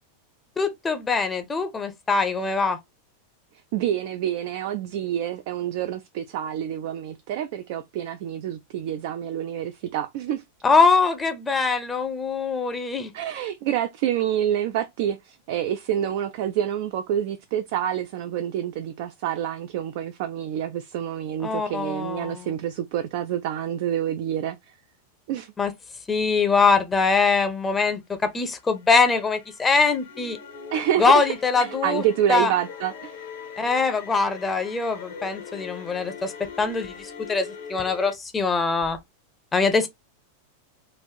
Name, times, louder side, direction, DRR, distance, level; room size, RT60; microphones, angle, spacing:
voice 1, 0.6-2.8 10.6-13.1 21.4-22.5 25.6-25.7 26.1-30.4 31.0-32.0 32.3-32.5 33.6-39.0 39.5-39.9, left 4 dB, 15° left, 0.6 m, -23 dB
voice 2, 3.7-10.4 13.1-24.6 25.3-25.5 30.7-31.3 31.6-33.2, right 10 dB, 50° right, 0.4 m, -27 dB
sound 1, 28.6-38.1, left 5 dB, 60° left, 0.9 m, -41 dB
3.9 x 2.5 x 2.8 m
figure-of-eight pair, 90°, 0 cm